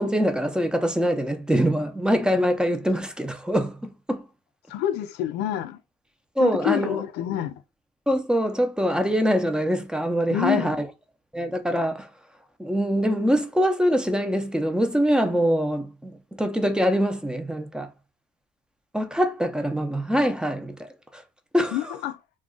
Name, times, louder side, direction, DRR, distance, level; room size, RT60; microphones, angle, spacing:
voice 1, 0.0-4.2 6.4-7.0 8.1-10.9 11.3-12.1 12.6-17.9 18.9-21.2 21.5-21.8, equal, 5° right, 0.5 m, -24 dB
voice 2, 4.7-5.8 6.4-7.6 10.3-10.8 21.7-22.2, left 12 dB, 90° left, 0.4 m, -27 dB
2.4 x 2.3 x 3.6 m
cardioid pair, 110°, 17 cm